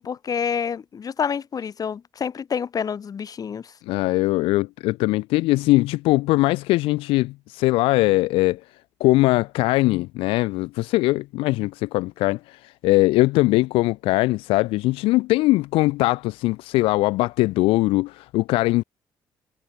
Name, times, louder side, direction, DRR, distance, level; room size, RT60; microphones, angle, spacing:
voice 1, 0.0-3.7, left 7 dB, 40° left, 0.7 m, -28 dB
voice 2, 3.9-8.6 9.0-12.6 12.8-18.8, left 20 dB, 75° left, 0.4 m, -21 dB
hypercardioid pair, 55°, 9 cm